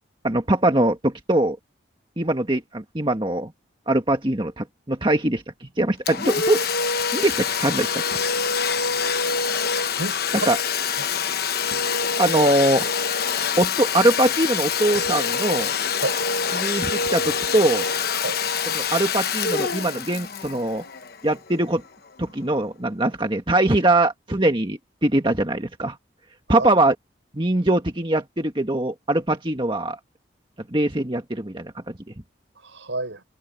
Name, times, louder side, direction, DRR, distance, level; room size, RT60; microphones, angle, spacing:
voice 1, 0.2-1.6 2.2-3.5 3.9-6.6 6.9-7.9 10.5-10.6 12.2-12.9 13.6-15.7 16.5-17.8 18.7-20.8 21.2-21.8 22.2-26.0 26.5-26.9 27.3-30.0 30.7-31.7, right 1 dB, 25° right, 1.6 m, -22 dB
Domestic sounds home sounds, 6.1-21.5, left 6 dB, 50° left, 1.1 m, -25 dB
voice 2, 10.0-10.5 11.0-11.3 16.0-16.2 18.2-18.4 26.5-26.7 32.5-33.2, right 2 dB, 70° right, 6.0 m, -30 dB
head